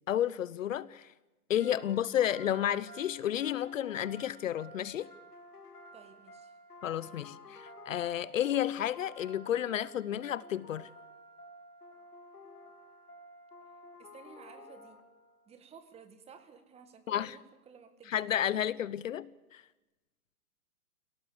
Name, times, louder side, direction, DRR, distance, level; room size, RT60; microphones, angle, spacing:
voice 1, 0.1-1.1 1.5-5.1 6.8-10.9 17.1-17.4 18.1-19.6, left 11 dB, 60° left, 0.8 m, -32 dB
sound 1, 1.6-15.5, equal, 85° left, 3.1 m, -52 dB
voice 2, 5.9-6.5 7.1-7.6 14.0-15.0 15.5-18.5, right 6 dB, 15° right, 2.0 m, -55 dB
26.5 x 18.0 x 8.5 m
hypercardioid pair, 140°, 44 cm